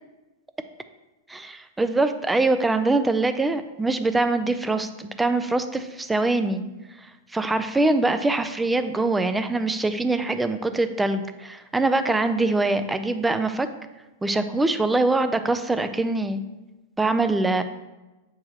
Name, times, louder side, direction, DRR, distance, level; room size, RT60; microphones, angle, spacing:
voice 1, 1.3-6.6 7.3-13.7 14.2-16.4 17.0-17.6, right 2 dB, 5° right, 10 dB, 0.3 m, -23 dB
7.5 x 4.7 x 2.9 m, 1.1 s
supercardioid pair, 150°, 0 cm